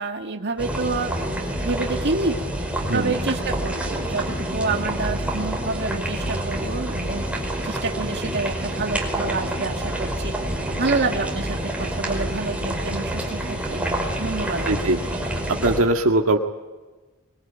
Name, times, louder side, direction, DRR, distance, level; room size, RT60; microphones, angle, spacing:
voice 1, 0.0-2.4 2.9-7.2 7.6-10.3 10.8-13.8 14.2-15.1, right 3 dB, 55° right, 4 dB, 2.2 m, -28 dB
sound 1, 0.6-15.8, right 1 dB, 5° right, 5.0 m, -27 dB
voice 2, 2.8-3.2 14.7-15.0 15.5-16.4, right 2 dB, 70° right, 3 dB, 1.9 m, -20 dB
23.5 x 23.0 x 9.0 m, 1.2 s
head